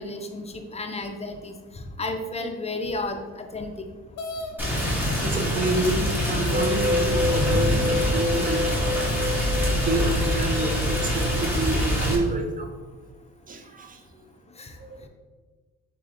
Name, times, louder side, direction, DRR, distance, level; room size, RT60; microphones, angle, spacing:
voice 1, 0.0-1.5 2.0-3.9 14.6-14.7, left 2 dB, 20° left, 5 dB, 0.5 m, -32 dB
sound 1, 4.2-4.5 5.5-5.6 6.3-6.4 7.0-7.7, left 2 dB, 65° left, 0.6 m, -36 dB
Rain, 4.6-12.2, equal, 5° right, 1.2 m, -25 dB
voice 2, 4.9-8.6 9.6-12.7 13.5-14.2 14.8-15.1, right 2 dB, 25° right, 5 dB, 0.6 m, -29 dB
sound 2, 6.5-11.5, left 2 dB, 60° right, 1.3 m, -28 dB
4.1 x 3.3 x 3.8 m, 1.3 s
cardioid pair, 90°, 30 cm